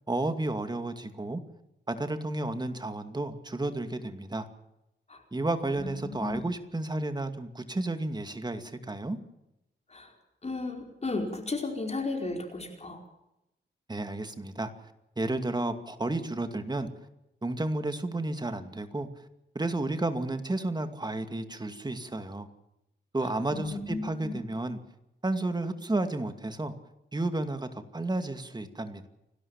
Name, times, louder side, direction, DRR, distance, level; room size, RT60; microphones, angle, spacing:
voice 1, 0.1-1.4 1.9-4.5 5.3-9.2 13.9-14.7 15.2-16.9 17.4-19.1 19.5-22.5 23.1-24.8 25.2-26.7 27.1-29.1, right 2 dB, 20° right, 8 dB, 2.4 m, -32 dB
voice 2, 5.8-6.4 9.9-10.1 10.4-13.0 23.2-24.4, left 3 dB, 35° left, 2 dB, 4.8 m, -34 dB
29.5 x 12.5 x 7.3 m, 0.86 s
wide cardioid pair, 105°, 19 cm